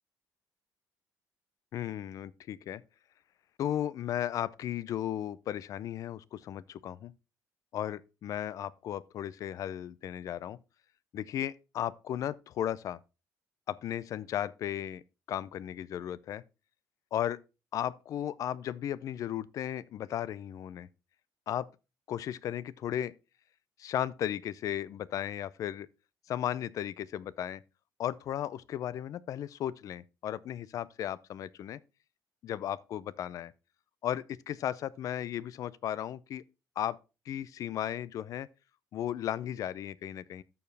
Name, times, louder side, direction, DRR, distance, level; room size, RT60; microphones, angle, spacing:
voice 1, 1.7-2.8 3.6-7.1 7.7-10.6 11.1-13.0 13.7-15.0 15.3-16.4 17.1-17.4 17.7-20.9 21.5-21.7 22.1-23.1 23.8-25.9 26.3-27.6 28.0-31.8 32.4-33.5 34.0-36.4 36.8-37.0 37.3-38.5 38.9-40.4, left 11 dB, 55° left, 0.4 m, -35 dB
13.5 x 4.7 x 3.3 m
cardioid pair, 135°, 7 cm